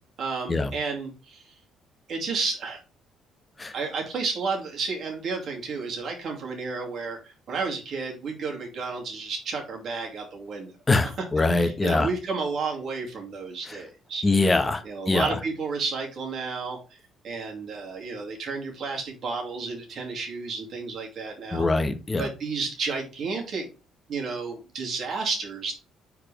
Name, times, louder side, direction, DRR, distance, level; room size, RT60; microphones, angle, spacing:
voice 1, 0.2-1.5 2.1-2.8 3.7-10.7 11.6-14.2 14.8-17.0 17.2-21.7 22.2-23.7 24.1-25.7, right 4 dB, 60° right, 0 dB, 2.4 m, -32 dB
voice 2, 10.9-12.1 13.7-13.8 14.2-15.4 21.5-22.3, left 3 dB, 20° left, 8 dB, 1.1 m, -23 dB
4.8 x 4.6 x 4.9 m, 0.32 s
cardioid pair, 85°, 0 cm